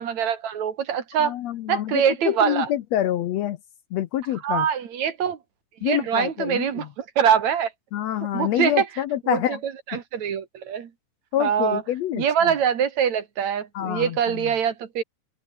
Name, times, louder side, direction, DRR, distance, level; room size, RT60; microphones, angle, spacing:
voice 1, 0.0-1.3 1.7-2.7 4.4-5.4 5.8-7.7 8.3-8.9 9.2-10.9 11.4-11.8 12.1-15.0, right 8 dB, 65° right, 3.2 m, -24 dB
voice 2, 1.2-3.6 3.9-4.7 5.8-6.9 7.9-9.6 11.3-12.5 13.8-14.5, left 12 dB, 70° left, 1.8 m, -26 dB
open air
omnidirectional pair, 3.6 m